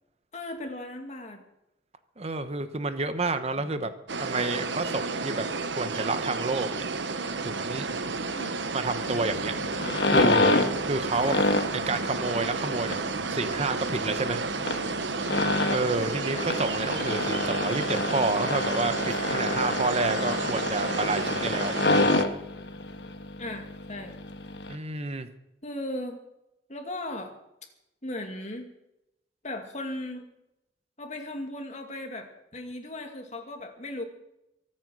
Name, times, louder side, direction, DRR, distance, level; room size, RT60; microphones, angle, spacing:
voice 1, 0.3-1.4 3.6-3.9 8.3-8.6 11.2-11.6 15.9-16.5 23.4-24.2 25.6-26.2 26.7-27.4 28.0-28.7 29.4-30.3 31.0-34.0, left 1 dB, 40° left, 4 dB, 2.4 m, -37 dB
voice 2, 2.2-3.9 4.2-5.5 5.8-6.8 7.4-7.9 8.7-9.5 10.1-11.4 11.9-14.4 15.7-21.7 24.7-25.3, right 3 dB, 35° right, 10 dB, 1.0 m, -29 dB
sound 1, 4.1-22.3, right 4 dB, 80° right, 1.1 m, -32 dB
sound 2, 8.9-24.8, left 2 dB, 65° left, 1.4 m, -28 dB
23.5 x 8.8 x 6.3 m, 0.88 s
head